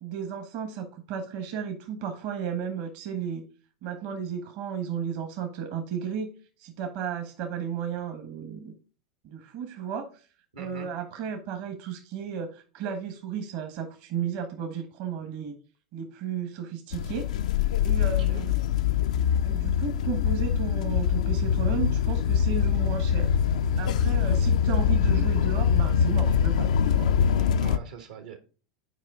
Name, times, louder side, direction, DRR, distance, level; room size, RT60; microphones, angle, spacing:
voice 1, 0.0-3.4 3.8-6.3 6.6-8.7 9.2-10.1 10.6-15.6 15.9-17.3 17.8-18.5 19.4-23.3 23.8-27.1, right 7 dB, 55° right, 7 dB, 1.2 m, -34 dB
voice 2, 10.5-10.9 18.0-18.5 23.8-24.0 27.3-28.4, right 5 dB, 80° right, 6 dB, 1.4 m, -44 dB
sound 1, 16.9-27.8, left 8 dB, 75° left, 0.4 m, -24 dB
7.4 x 4.7 x 3.7 m, 0.37 s
hypercardioid pair, 95°, 4 cm